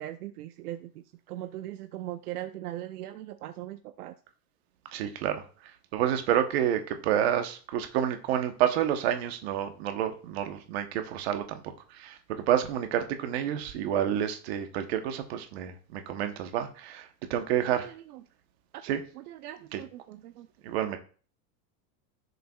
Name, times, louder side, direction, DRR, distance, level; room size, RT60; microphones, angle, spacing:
voice 1, 0.0-4.1 17.5-18.2 18.9-20.5, right 13 dB, 65° right, 9 dB, 0.7 m, -40 dB
voice 2, 4.9-17.9 18.8-19.0 19.7-19.8 20.6-21.0, right 10 dB, 40° right, 7 dB, 0.9 m, -29 dB
15.0 x 6.8 x 2.3 m, 0.40 s
supercardioid pair, 180°, 50 cm